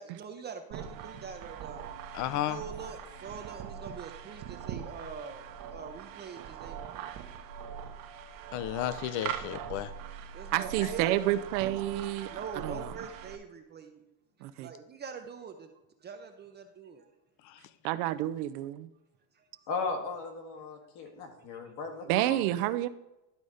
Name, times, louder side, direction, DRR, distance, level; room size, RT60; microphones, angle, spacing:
voice 1, 0.0-1.8 2.4-6.8 8.3-8.4 10.3-11.3 12.3-14.0 14.6-15.7 16.0-17.1 19.3-19.7 21.0-21.7, right 6 dB, 25° right, 0.5 m, -44 dB
sound 1, 0.7-13.4, right 8 dB, 50° right, 0.9 m, -42 dB
voice 2, 2.1-2.6 8.5-9.9 17.4-17.6, left 12 dB, 45° left, 0.5 m, -33 dB
voice 3, 10.5-12.3 12.6-12.9 14.4-14.7 17.8-18.9 22.1-22.9, right 14 dB, 85° right, 0.7 m, -29 dB
voice 4, 19.7-22.2, left 4 dB, 75° left, 2.0 m, -36 dB
11.5 x 4.0 x 4.9 m
cardioid pair, 145°, 45 cm